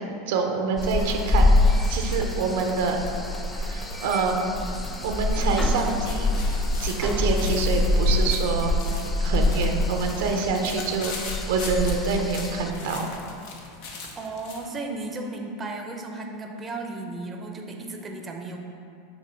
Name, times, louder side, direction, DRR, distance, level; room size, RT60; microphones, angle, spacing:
voice 1, 0.0-1.5 1.9-3.0 3.5-4.6 5.0-6.5 6.8-8.7 9.2-13.1, right 4 dB, 75° right, 3 dB, 0.6 m, -26 dB
sound 1, 0.8-11.0, left 1 dB, 30° left, 1.2 m, -42 dB
sound 2, 0.8-12.7, left 2 dB, 15° left, 0.4 m, -25 dB
sound 3, 5.2-14.7, left 4 dB, 65° left, 0.8 m, -40 dB
voice 2, 14.1-18.6, right 2 dB, 25° right, 2 dB, 0.6 m, -34 dB
6.2 x 2.9 x 5.6 m, 2.5 s
hypercardioid pair, 105°, 0 cm